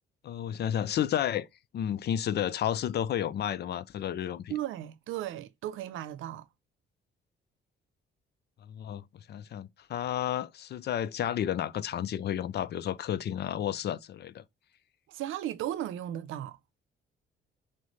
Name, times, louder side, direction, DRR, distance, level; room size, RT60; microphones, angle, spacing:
voice 1, 0.2-1.5 1.7-4.5 8.7-9.0 9.3-14.4, left 10 dB, 55° left, 0.5 m, -31 dB
voice 2, 4.5-6.5 15.1-16.6, right 12 dB, 85° right, 0.5 m, -35 dB
6.2 x 2.1 x 3.1 m
cardioid pair, 90°, 20 cm